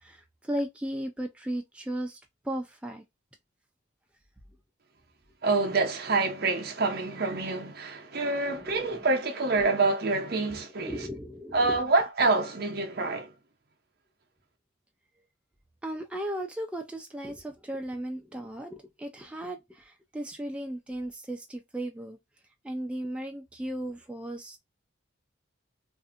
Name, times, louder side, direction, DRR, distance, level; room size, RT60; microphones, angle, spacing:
voice 1, 0.0-2.2 2.4-3.0 7.4-7.5 8.4-9.1 10.8-11.8 15.8-22.2 22.6-24.6, right 1 dB, 5° right, 0.3 m, -36 dB
voice 2, 5.4-11.0 11.5-13.3, right 3 dB, 50° right, 0.6 m, -27 dB
2.6 x 2.5 x 2.4 m
head